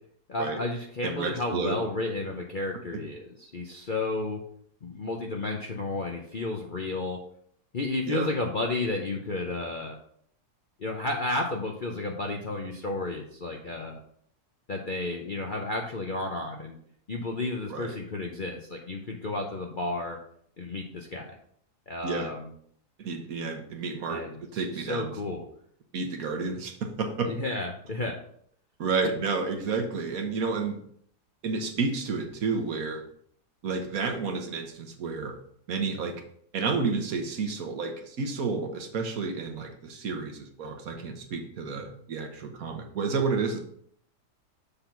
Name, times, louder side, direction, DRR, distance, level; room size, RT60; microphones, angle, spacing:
voice 1, 0.3-4.4 4.8-7.2 7.7-10.0 10.8-14.0 14.7-16.8 17.1-20.2 20.6-21.4 21.9-22.5 24.1-25.4 27.2-28.2, left 2 dB, 45° left, 1 dB, 0.7 m, -32 dB
voice 2, 1.0-1.8 2.9-3.0 8.0-8.3 17.7-17.9 22.0-22.3 23.0-25.1 25.9-27.3 28.8-30.8 31.4-33.0 33.6-35.4 35.7-36.2 36.5-43.6, right 4 dB, 60° right, 5 dB, 1.4 m, -30 dB
6.9 x 3.9 x 5.8 m, 0.64 s
omnidirectional pair, 1.7 m